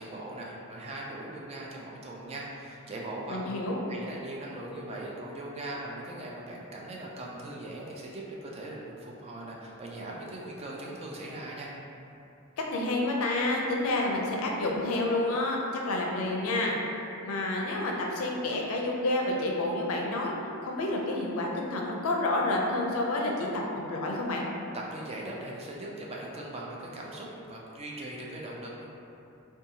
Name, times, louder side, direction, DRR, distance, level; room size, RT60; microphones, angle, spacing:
voice 1, 0.0-3.6 3.9-11.7 24.7-28.9, right 1 dB, 30° right, -3 dB, 0.3 m, -40 dB
voice 2, 3.3-3.8 12.7-15.6 15.9-16.8 17.2-20.3 20.6-24.4, left 2 dB, 80° left, -1 dB, 0.4 m, -29 dB
2.6 x 2.3 x 2.7 m, 2.8 s
head